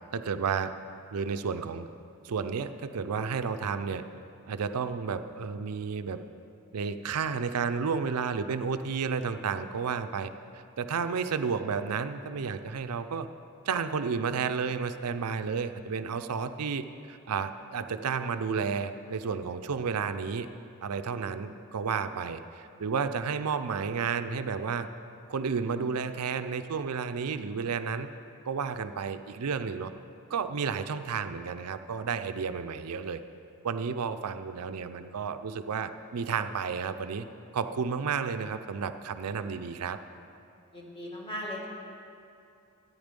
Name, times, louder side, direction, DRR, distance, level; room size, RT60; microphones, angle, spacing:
voice 1, 0.1-0.7 1.1-1.9 2.2-4.0 4.5-6.2 6.7-13.3 13.7-20.5 20.8-24.9 25.3-28.1 28.4-29.9 30.3-33.2 33.6-37.3 37.5-40.0, right 5 dB, 85° right, 10 dB, 0.5 m, -32 dB
voice 2, 40.7-41.7, equal, 25° left, -3 dB, 2.0 m, -37 dB
14.0 x 9.7 x 5.3 m, 2.6 s
head